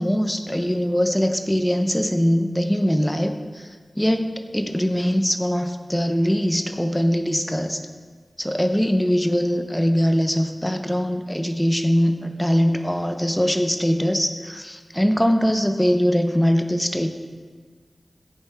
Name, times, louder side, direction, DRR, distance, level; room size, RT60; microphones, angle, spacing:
voice 1, 0.0-3.3 4.0-7.8 8.4-17.1, equal, 5° left, 6 dB, 0.8 m, -22 dB
15.0 x 8.8 x 3.6 m, 1.5 s
wide cardioid pair, 80°, 0 cm